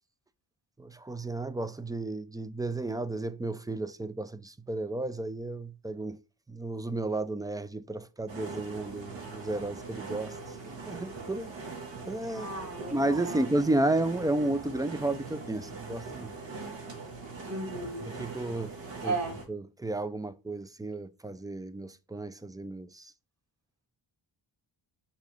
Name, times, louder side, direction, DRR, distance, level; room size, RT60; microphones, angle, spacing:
voice 1, 0.8-6.2 6.5-11.5 12.1-12.5 12.9-16.3 18.0-18.8 19.0-19.2 19.5-23.1, right 2 dB, 10° right, 0.3 m, -32 dB
sound 1, 8.3-19.5, right 4 dB, 70° right, 1.9 m, -42 dB
voice 2, 12.3-13.5 17.4-18.1 19.0-19.3, right 2 dB, 35° right, 2.6 m, -35 dB
5.6 x 3.8 x 4.8 m
wide cardioid pair, 115°, 46 cm